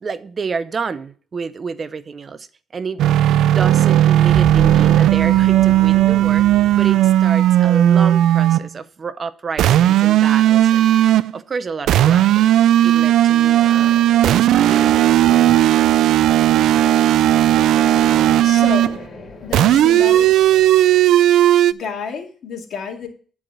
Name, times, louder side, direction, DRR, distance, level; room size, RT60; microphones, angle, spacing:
voice 1, 0.0-3.0 3.5-10.8 11.3-12.4 12.8-13.9 14.2-15.6 16.8-16.9, right 5 dB, 40° right, 0.6 m, -29 dB
sound 1, 3.0-8.7 9.6-11.3 11.9-19.0 19.5-21.7, right 12 dB, 80° right, 0.4 m, -15 dB
sound 2, 4.2-7.7, right 1 dB, 10° right, 5.5 m, -31 dB
sound 3, 11.8-21.6, left 3 dB, 45° left, 3.3 m, -41 dB
voice 2, 18.4-19.0 19.4-20.4 21.7-23.1, left 5 dB, 65° left, 2.2 m, -30 dB
10.5 x 4.8 x 7.5 m
cardioid pair, 90°, 0 cm